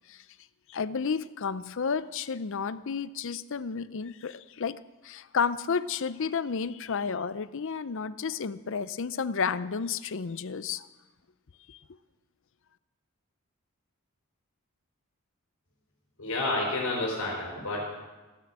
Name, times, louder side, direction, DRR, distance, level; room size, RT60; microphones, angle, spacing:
voice 1, 0.7-10.9 11.7-11.8, left 5 dB, 60° left, 16 dB, 0.5 m, -31 dB
voice 2, 16.2-17.9, left 2 dB, 75° left, -2 dB, 4.8 m, -30 dB
17.0 x 10.5 x 7.4 m, 1.2 s
head